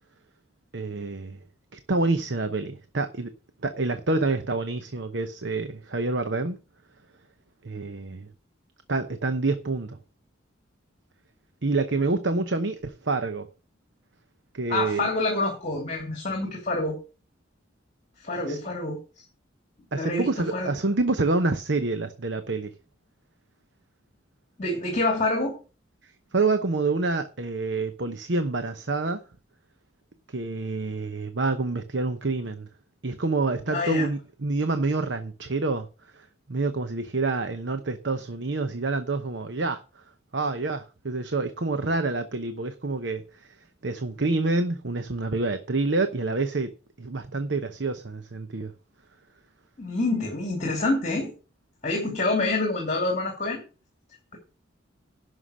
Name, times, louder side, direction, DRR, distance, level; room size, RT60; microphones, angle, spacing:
voice 1, 0.7-1.4 1.7-3.3 3.6-6.6 7.6-8.3 8.9-10.0 11.6-13.5 14.5-15.1 18.5-18.6 19.9-22.7 26.3-29.2 30.3-32.7 33.0-35.9 36.1-39.8 40.3-43.5 43.8-46.7 47.0-48.7, right 3 dB, 60° right, 0.9 m, -27 dB
voice 2, 14.7-17.0 18.2-19.2 19.9-20.7 24.6-25.5 33.7-34.1 49.8-51.3 51.8-53.6, left 2 dB, 35° left, 2.8 m, -27 dB
11.5 x 5.9 x 6.4 m
head